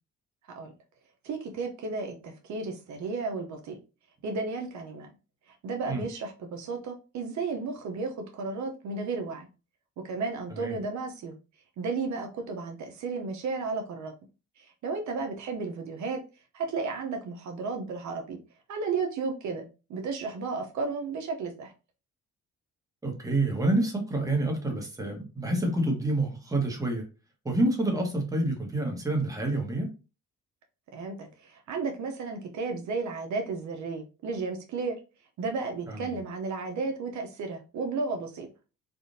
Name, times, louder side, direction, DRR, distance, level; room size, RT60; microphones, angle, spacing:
voice 1, 1.2-3.8 4.2-5.1 5.6-9.5 10.0-11.4 11.8-14.1 14.6-16.2 16.5-18.4 18.7-21.7 30.9-35.0 35.4-38.5, right 4 dB, 70° right, 0.7 m, -33 dB
voice 2, 23.0-27.0 27.4-29.9 35.9-36.2, right 2 dB, 10° right, 1.1 m, -28 dB
3.6 x 2.4 x 2.6 m
cardioid pair, 90°, 30 cm